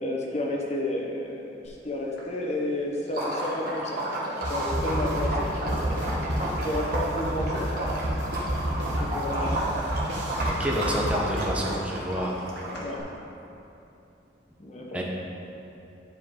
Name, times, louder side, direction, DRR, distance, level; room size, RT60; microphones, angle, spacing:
voice 1, 0.0-4.0 4.5-6.4 6.6-7.7 9.0-9.7 12.7-13.1 14.6-15.0, left 1 dB, 40° left, -1 dB, 1.0 m, -32 dB
sound 1, 1.7-1.8 2.2-7.9 8.1-8.6 8.9-10.0 10.4-13.0, left 1 dB, 65° left, 1.8 m, -44 dB
Liquid, 3.1-13.0, right 1 dB, 55° right, 1.4 m, -32 dB
sound 2, 4.4-11.8, right 1 dB, 70° right, 1.2 m, -30 dB
voice 2, 10.4-12.4 14.9-15.0, equal, 5° right, -3 dB, 0.9 m, -29 dB
10.5 x 4.8 x 3.8 m, 2.8 s
head